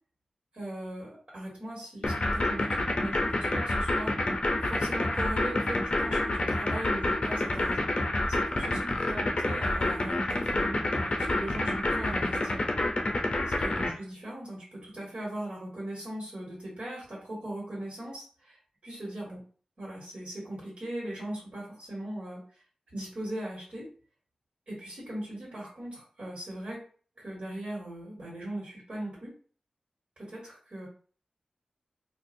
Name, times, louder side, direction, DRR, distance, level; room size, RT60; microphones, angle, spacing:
voice 1, 0.5-4.1 4.6-7.9 8.3-12.7 13.6-18.6 18.8-19.4 19.8-22.4 22.9-23.9 24.7-26.8 27.2-29.3 30.2-30.9, right 1 dB, 60° right, -6 dB, 1.7 m, -39 dB
sound 1, 2.0-13.9, left 2 dB, 50° left, 0.6 m, -28 dB
4.3 x 2.4 x 2.6 m, 0.42 s
wide cardioid pair, 95°, 2 cm